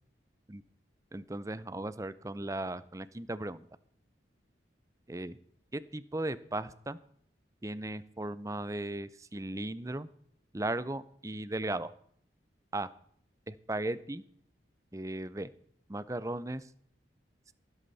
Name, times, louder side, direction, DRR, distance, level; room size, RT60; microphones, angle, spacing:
voice 1, 1.1-3.6 5.1-5.4 5.7-7.0 7.6-10.1 10.5-11.9 12.7-12.9 13.5-14.2 14.9-15.5 15.9-16.7, right 1 dB, 15° right, 16 dB, 0.6 m, -36 dB
14.5 x 13.0 x 4.1 m, 0.63 s
head